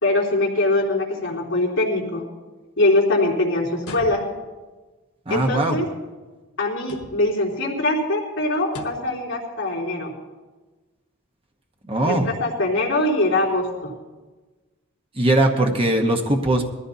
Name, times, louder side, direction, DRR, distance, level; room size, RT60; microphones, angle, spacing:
voice 1, 0.0-2.2 2.8-4.2 5.3-5.9 6.6-10.1 12.0-13.9, left 2 dB, 60° left, -4 dB, 3.4 m, -22 dB
sound 1, 3.8-4.6 6.8-7.4 8.7-9.2, left 2 dB, 90° left, 1.5 m, -39 dB
voice 2, 5.3-5.8 11.9-12.3 15.2-16.7, right 1 dB, 25° right, 3 dB, 1.1 m, -20 dB
21.0 x 14.5 x 2.8 m, 1.2 s
head